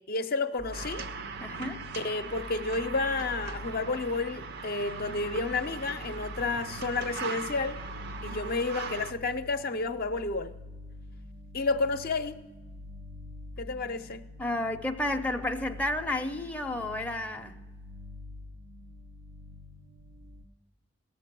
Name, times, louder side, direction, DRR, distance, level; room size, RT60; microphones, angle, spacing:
voice 1, 0.1-1.1 1.9-7.8 8.2-10.5 11.5-12.4 13.6-14.2, left 3 dB, 55° left, 0.6 m, -31 dB
sound 1, 0.6-20.4, left 2 dB, 90° right, 0.9 m, -46 dB
sound 2, 0.7-9.1, right 5 dB, 60° right, 0.5 m, -40 dB
voice 2, 1.4-1.8 8.3-8.4 14.4-17.6, left 1 dB, 10° left, 0.5 m, -31 dB
18.0 x 7.2 x 6.0 m
head